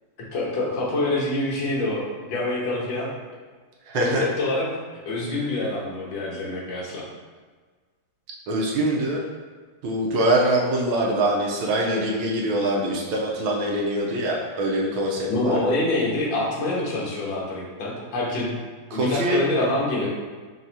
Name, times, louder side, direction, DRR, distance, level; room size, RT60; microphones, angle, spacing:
voice 1, 0.3-3.1 3.9-4.7 5.1-7.0 15.3-18.5 18.9-20.1, left 2 dB, 70° left, -4 dB, 1.6 m, -26 dB
voice 2, 3.9-4.2 8.5-9.3 9.8-15.6 18.9-19.4, right 1 dB, 85° right, -2 dB, 1.4 m, -24 dB
5.4 x 2.8 x 2.7 m, 1.4 s
omnidirectional pair, 2.2 m